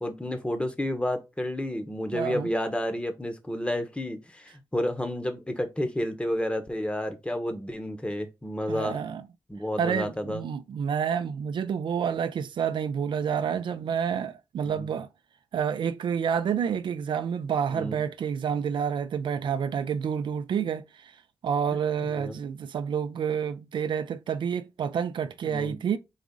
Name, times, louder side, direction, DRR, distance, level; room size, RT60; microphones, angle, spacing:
voice 1, 0.0-9.1 9.5-10.4 14.8-14.9 17.7-18.0 22.0-22.4 25.4-25.8, left 1 dB, 15° left, 0.9 m, -31 dB
voice 2, 2.1-2.5 8.7-9.2 9.8-15.1 15.5-21.2 21.4-26.0, right 7 dB, 75° right, 0.4 m, -29 dB
4.0 x 2.5 x 3.6 m
cardioid pair, 60°, 8 cm